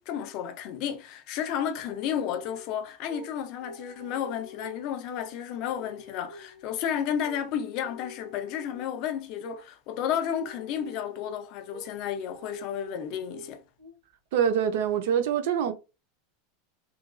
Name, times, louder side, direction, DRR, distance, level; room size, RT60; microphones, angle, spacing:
voice 1, 0.0-13.6, left 9 dB, 35° left, 0.4 m, -32 dB
sound 1, 1.9-2.7 3.1-3.3 3.6-5.3 5.6-6.7 7.2-7.4 7.8-9.1 9.4-9.6 10.0-11.3 11.7-11.9 12.3-13.5 13.8-14.0 14.3-14.9, left 1 dB, 90° right, 1.0 m, -47 dB
voice 2, 14.3-15.7, right 8 dB, 55° right, 0.4 m, -25 dB
3.0 x 2.2 x 2.4 m
supercardioid pair, 180°, 0 cm